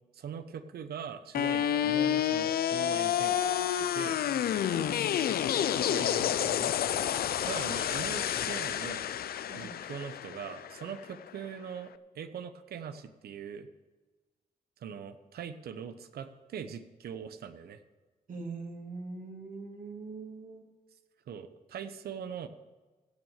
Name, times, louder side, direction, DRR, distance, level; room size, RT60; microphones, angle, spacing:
voice 1, 0.1-4.2 5.9-6.7 7.4-9.1 9.5-13.7 14.8-17.8 21.3-22.5, right 7 dB, 80° right, 10 dB, 0.9 m, -41 dB
sound 1, 1.3-11.4, left 10 dB, 75° left, 0.5 m, -29 dB
voice 2, 18.3-20.6, right 3 dB, 55° right, 1 dB, 2.8 m, -42 dB
16.5 x 6.3 x 6.5 m, 1.3 s
cardioid pair, 65°, 16 cm